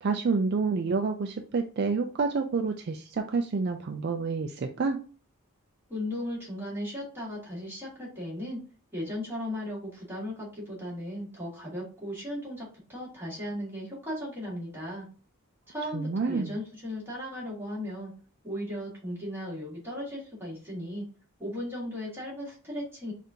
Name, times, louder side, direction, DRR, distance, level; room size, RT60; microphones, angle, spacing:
voice 1, 0.0-5.0 15.9-16.6, right 4 dB, 50° right, 5 dB, 0.3 m, -28 dB
voice 2, 5.9-8.6 8.9-15.1 15.7-18.1 18.4-21.0 21.4-23.1, equal, 10° right, -6 dB, 1.8 m, -36 dB
5.1 x 2.5 x 2.8 m, 0.39 s
head